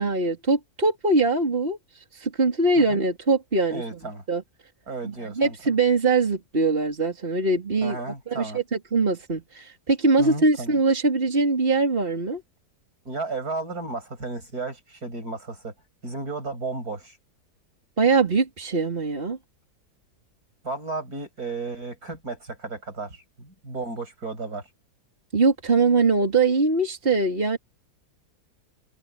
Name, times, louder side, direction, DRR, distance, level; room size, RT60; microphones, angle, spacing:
voice 1, 0.0-1.8 2.1-4.0 4.3-4.4 5.0-8.0 8.3-12.4 18.0-19.4 25.3-27.6, right 3 dB, 35° right, 3.5 m, -22 dB
voice 2, 3.7-4.2 4.9-5.6 7.8-8.6 10.2-10.7 13.1-15.7 16.0-17.2 20.6-24.6, right 3 dB, 65° right, 7.5 m, -33 dB
omnidirectional pair, 1.7 m